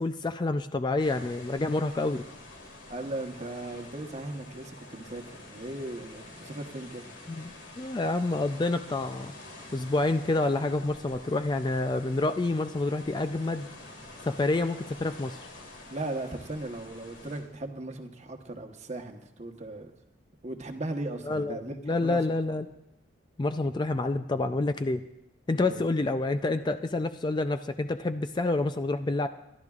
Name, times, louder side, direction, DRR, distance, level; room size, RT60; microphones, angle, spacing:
voice 1, 0.0-2.2 7.3-9.3 9.7-13.7 14.2-15.4 21.3-22.7 23.4-25.0 25.5-29.3, left 2 dB, 25° left, 9 dB, 0.4 m, -28 dB
sound 1, 1.0-17.4, left 2 dB, 85° left, 3.1 m, -47 dB
voice 2, 2.9-7.1 15.9-19.9 20.4-22.2 25.6-25.8, right 2 dB, 40° right, 5 dB, 1.1 m, -37 dB
29.0 x 12.0 x 2.4 m, 0.84 s
head